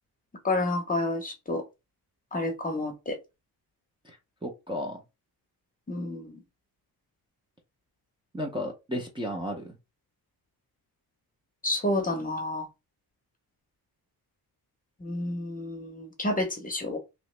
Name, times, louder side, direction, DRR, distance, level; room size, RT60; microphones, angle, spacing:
voice 1, 0.4-1.6 2.3-3.2 5.9-6.4 11.6-12.7 15.0-17.0, left 2 dB, 20° left, 0.7 m, -30 dB
voice 2, 4.4-5.0 8.3-9.8, equal, 15° right, 0.5 m, -33 dB
3.0 x 2.8 x 3.1 m
wide cardioid pair, 175°, 39 cm